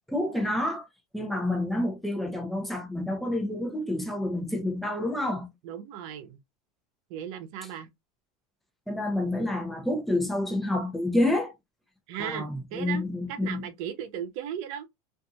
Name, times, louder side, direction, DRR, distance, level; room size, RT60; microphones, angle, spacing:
voice 1, 0.1-0.9 1.1-5.5 8.9-11.5 12.2-13.7, left 1 dB, ahead, 0.8 m, -28 dB
voice 2, 5.6-6.4 7.1-7.9 12.1-13.0 13.3-14.9, right 9 dB, 60° right, 0.8 m, -36 dB
2.7 x 2.6 x 2.3 m
hypercardioid pair, 100°, 18 cm